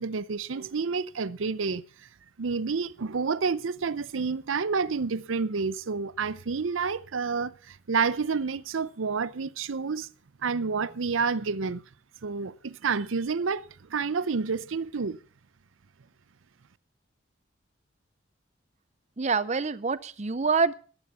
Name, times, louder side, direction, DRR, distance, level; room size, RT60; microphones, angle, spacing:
voice 1, 0.0-1.8 2.4-10.1 10.4-11.8 12.2-15.2, right 5 dB, 90° right, 0.6 m, -29 dB
voice 2, 19.2-20.7, right 4 dB, 35° right, 0.6 m, -26 dB
14.5 x 11.0 x 5.6 m
head